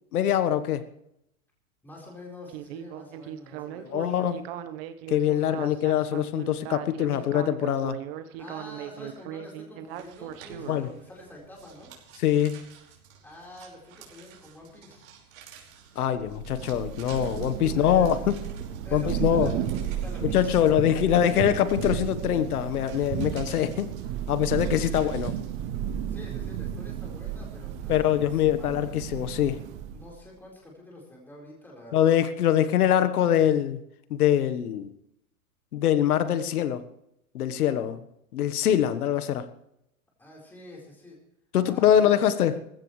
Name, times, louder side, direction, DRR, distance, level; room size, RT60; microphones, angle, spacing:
voice 1, 0.1-0.8 3.9-4.4 5.1-8.0 10.7-10.9 12.2-12.7 15.9-18.3 18.9-19.5 20.3-23.9 24.3-25.3 27.9-29.6 31.9-33.8 34.1-34.9 35.7-36.8 37.3-38.0 38.3-39.5 41.5-42.5, left 10 dB, 85° left, 12 dB, 1.4 m, -23 dB
voice 2, 1.8-4.1 5.4-5.8 7.1-7.3 8.4-11.9 13.2-15.1 17.7-18.4 18.8-21.1 24.8-25.3 26.1-28.9 29.7-32.1 40.2-41.2 41.6-42.3, left 1 dB, 5° left, -3 dB, 4.4 m, -47 dB
Speech synthesizer, 2.5-10.8, right 11 dB, 40° right, 1.2 m, -38 dB
sound 1, 9.9-25.7, right 7 dB, 65° right, 5.2 m, -52 dB
Thunder / Rain, 16.1-30.2, right 9 dB, 15° right, 0.5 m, -33 dB
20.5 x 16.0 x 3.3 m, 0.79 s
supercardioid pair, 155°, 43 cm